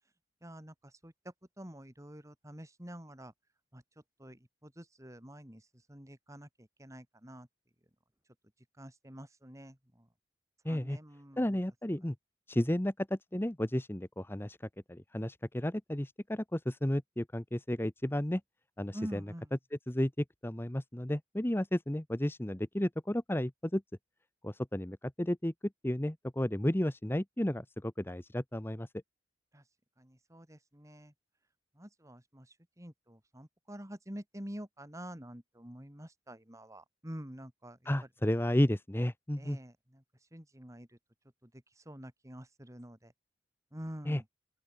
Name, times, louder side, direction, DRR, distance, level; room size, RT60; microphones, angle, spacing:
voice 1, 0.4-0.7 1.0-3.3 3.7-3.8 4.2-5.6 5.9-7.5 8.8-10.1 10.7-11.6 12.6-12.7 18.9-19.5 29.5-29.6 30.0-31.1 31.8-32.5 32.8-37.8 39.4-40.0 40.3-40.9 41.4-41.5 41.9-43.1 43.7-44.2, equal, 20° right, 3.9 m, -47 dB
voice 2, 10.6-11.0 11.4-12.1 12.5-14.6 14.9-18.4 18.8-19.3 19.7-23.8 24.4-25.5 25.8-28.9 37.8-39.6 44.0-44.2, left 1 dB, 15° left, 0.9 m, -32 dB
open air
head